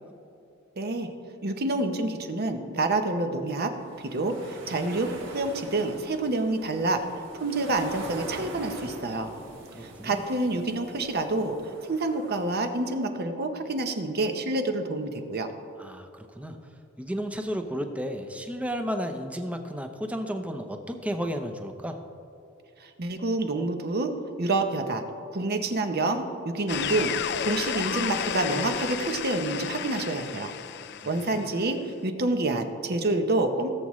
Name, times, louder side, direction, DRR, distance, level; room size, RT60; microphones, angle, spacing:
voice 1, 0.8-1.1 1.4-3.7 4.0-7.0 7.4-9.3 9.8-15.5 22.8-24.1 24.4-25.0 25.3-27.1 27.4-30.5 31.1-33.7, right 2 dB, 50° right, 6 dB, 0.9 m, -28 dB
sound 1, 3.7-13.0, right 2 dB, 65° right, 1.5 m, -43 dB
voice 2, 9.7-10.2 15.8-16.1 16.4-16.6 17.0-22.0 31.0-31.5, equal, 5° right, 5 dB, 0.7 m, -33 dB
sound 2, 26.7-31.6, left 8 dB, 60° left, 0.4 m, -32 dB
17.0 x 7.4 x 3.2 m, 2.6 s
head